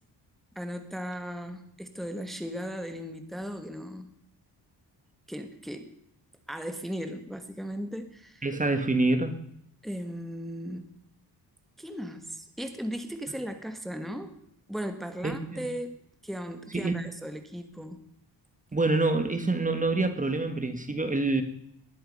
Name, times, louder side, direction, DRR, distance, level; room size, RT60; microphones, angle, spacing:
voice 1, 0.5-4.1 5.3-5.9 6.5-8.5 9.8-10.9 11.8-14.3 14.7-15.9 16.2-18.0, equal, ahead, 7 dB, 1.4 m, -37 dB
voice 2, 8.4-9.4 15.2-15.7 16.7-16.9 18.7-21.4, right 2 dB, 20° right, 8 dB, 1.5 m, -26 dB
20.0 x 11.5 x 5.4 m, 0.73 s
wide cardioid pair, 130°, 41 cm